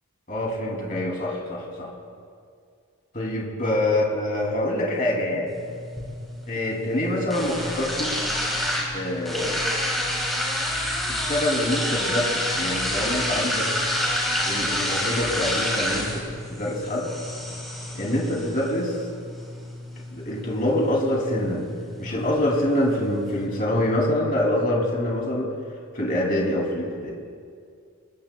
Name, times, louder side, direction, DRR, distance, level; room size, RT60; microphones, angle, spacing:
voice 1, 0.3-1.9 3.1-5.5 6.5-8.2 8.9-9.7 11.1-13.7 14.5-17.1 17.9-19.0 20.1-21.7 22.0-25.5 25.9-27.1, left 1 dB, 40° left, -2 dB, 3.0 m, -25 dB
sound 1, 5.5-23.5, left 1 dB, ahead, 4.2 m, -29 dB
25.0 x 21.0 x 2.3 m, 2.2 s
head